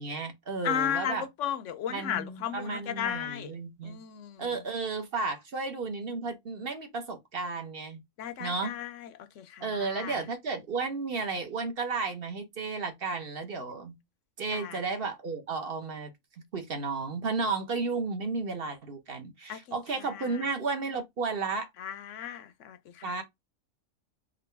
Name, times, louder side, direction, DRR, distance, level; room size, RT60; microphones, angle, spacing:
voice 1, 0.0-1.2 1.9-4.0 4.4-8.0 8.4-8.7 9.6-13.9 14.4-16.1 16.5-21.7 23.0-23.2, right 4 dB, 45° right, 1.1 m, -33 dB
voice 2, 0.6-3.5 3.8-4.5 8.2-10.2 14.5-14.8 19.5-19.6 20.0-20.4 21.8-23.1, left 9 dB, 65° left, 0.9 m, -35 dB
3.9 x 3.2 x 3.3 m
omnidirectional pair, 1.4 m